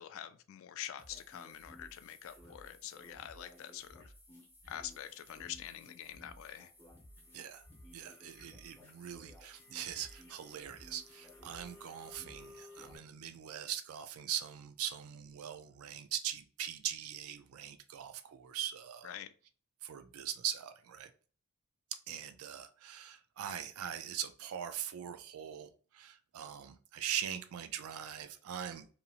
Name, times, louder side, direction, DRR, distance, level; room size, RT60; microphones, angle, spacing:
voice 1, 0.0-4.1 4.7-6.7 19.0-19.3, left 10 dB, 65° left, 0.3 m, -46 dB
sound 1, 1.0-13.0, left 1 dB, 10° left, 0.8 m, -56 dB
voice 2, 7.9-19.1 19.8-21.1 22.1-28.9, right 10 dB, 75° right, 0.4 m, -41 dB
2.8 x 2.7 x 2.4 m
head